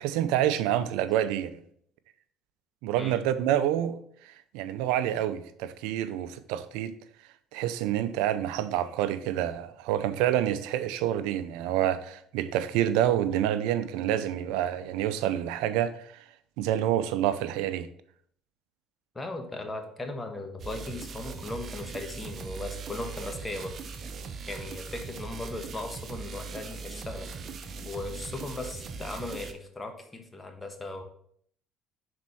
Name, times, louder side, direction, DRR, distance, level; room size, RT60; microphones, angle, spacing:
voice 1, 0.0-1.6 2.8-6.9 7.5-16.2 16.6-17.9, right 11 dB, 80° right, 0.5 m, -28 dB
voice 2, 19.1-23.7 24.5-27.3 27.9-31.0, left 2 dB, 20° left, 1.2 m, -37 dB
sound 1, 20.6-29.5, right 5 dB, 45° right, 0.7 m, -40 dB
6.1 x 4.3 x 4.1 m
supercardioid pair, 80°, 0 cm